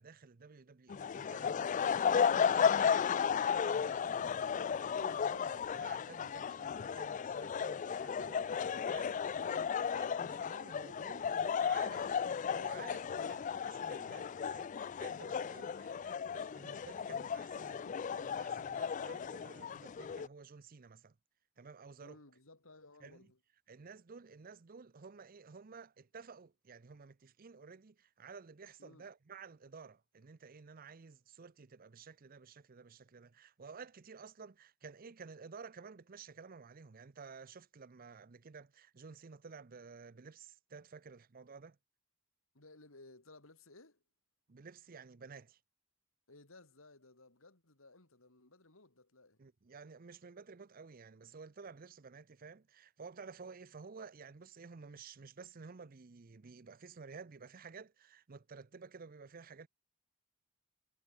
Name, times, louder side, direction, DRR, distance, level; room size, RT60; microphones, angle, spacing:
voice 1, 0.0-2.9 3.3-12.2 12.5-13.4 13.8-21.1 21.6-22.2 23.0-23.3 23.7-41.8 44.5-45.6 49.4-59.7, right 5 dB, 40° right, 0.6 m, -53 dB
sound 1, 0.9-20.3, left 7 dB, 35° left, 0.3 m, -34 dB
voice 2, 9.3-9.7 13.1-13.5 15.7-16.1 22.0-23.4 28.8-29.1 42.5-44.0 46.3-49.4, left 2 dB, 70° left, 3.7 m, -59 dB
head